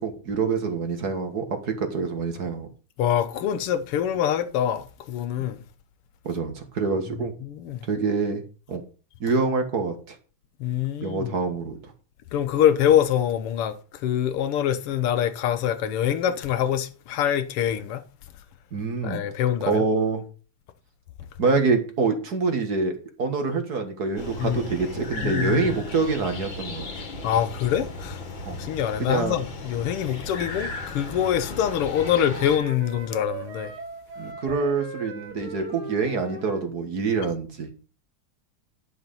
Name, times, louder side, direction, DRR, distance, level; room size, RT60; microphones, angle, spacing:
voice 1, 0.0-2.7 6.2-7.3 7.9-8.4 8.7-8.8 9.2-10.2 11.0-11.8 18.7-19.2 19.7-20.2 21.4-26.9 28.5-28.6 29.0-29.3 34.2-37.7, right 4 dB, 45° right, 1.9 m, -26 dB
voice 2, 3.0-5.6 7.4-7.9 10.6-11.3 12.3-18.0 19.0-19.8 24.4-24.6 25.2-25.7 27.2-28.2 28.6-33.7, left 10 dB, 90° left, 1.9 m, -25 dB
sound 1, 24.2-32.6, left 2 dB, 60° left, 2.5 m, -35 dB
Wind instrument woodwind instrument, 31.4-36.7, right 5 dB, 70° right, 2.6 m, -39 dB
10.5 x 6.5 x 5.5 m
omnidirectional pair, 2.4 m